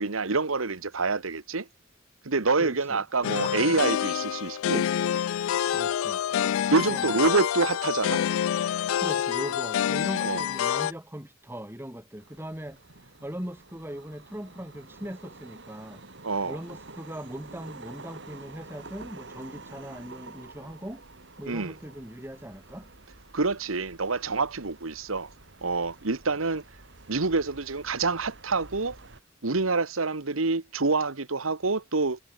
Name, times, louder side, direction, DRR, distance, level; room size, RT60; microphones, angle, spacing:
voice 1, 0.0-1.7 2.2-4.9 6.7-8.2 10.2-10.4 16.2-16.6 21.5-21.7 23.3-25.3 25.6-26.6 27.1-29.0 29.4-32.2, right 3 dB, 90° right, 1.4 m, -27 dB
voice 2, 2.6-3.0 5.7-6.2 6.7-7.3 9.0-16.0 16.4-21.0 21.4-22.9, equal, 10° right, 2.6 m, -40 dB
sound 1, 3.2-10.9, left 9 dB, 85° left, 0.3 m, -27 dB
sound 2, 12.2-29.2, right 3 dB, 60° right, 2.8 m, -49 dB
head